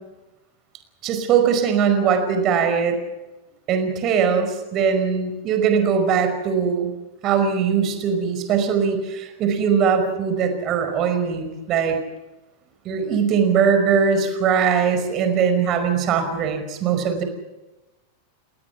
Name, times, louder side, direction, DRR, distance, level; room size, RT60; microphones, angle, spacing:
voice 1, 1.0-3.0 3.7-6.9 7.2-12.0 12.8-17.2, right 6 dB, 35° right, 7 dB, 5.1 m, -20 dB
29.5 x 20.0 x 5.9 m, 1.1 s
figure-of-eight pair, 90°, 0 cm